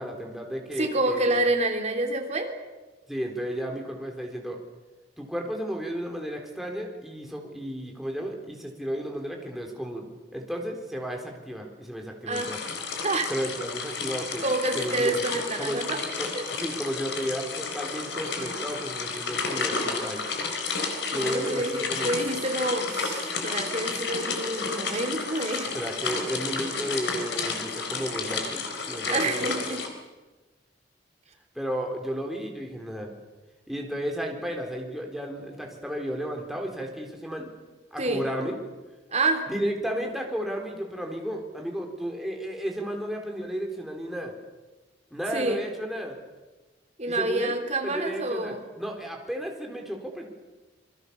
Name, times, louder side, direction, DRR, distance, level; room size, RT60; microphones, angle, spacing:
voice 1, 0.0-1.3 3.1-4.6 5.2-10.1 10.3-12.6 13.3-14.4 14.7-15.2 15.6-15.8 16.2-16.3 16.6-20.2 21.1-22.1 23.2-23.3 25.7-29.5 31.5-33.1 33.7-37.5 37.9-38.6 39.5-44.3 45.1-46.2 47.0-47.6 47.8-50.3, equal, ahead, 1 dB, 4.1 m, -33 dB
voice 2, 0.8-2.5 12.3-12.5 13.0-13.3 14.4-16.0 16.3-16.4 21.1-25.7 29.0-29.8 38.0-38.3 39.1-39.4 45.3-45.6 47.0-48.6, right 2 dB, 35° right, 4 dB, 3.5 m, -28 dB
sound 1, 12.3-29.9, left 4 dB, 65° left, 4.5 m, -32 dB
28.0 x 23.0 x 7.1 m, 1.2 s
head